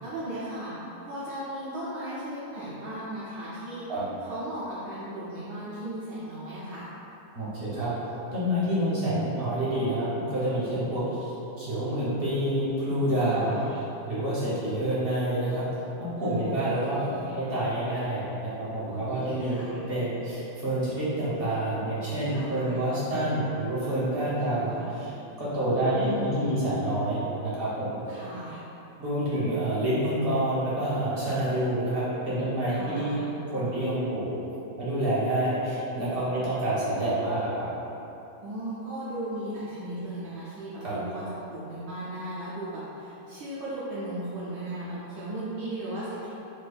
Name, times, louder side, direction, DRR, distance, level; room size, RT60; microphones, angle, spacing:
voice 1, 0.0-0.7 1.0-3.9 4.2-6.9 13.2-13.7 16.2-17.3 18.9-19.8 22.2-22.8 24.4-24.8 25.7-26.7 28.1-28.6 32.7-33.2 38.4-46.3, right 1 dB, 75° right, -10 dB, 1.2 m, -37 dB
voice 2, 7.3-7.9 8.3-13.6 14.0-15.6 16.0-19.6 19.9-25.1 25.4-28.0 29.0-33.1 33.5-34.3 34.8-37.7 40.8-41.0, right 1 dB, 45° right, -10 dB, 0.7 m, -28 dB
4.4 x 2.6 x 2.3 m, 3.0 s
omnidirectional pair, 2.0 m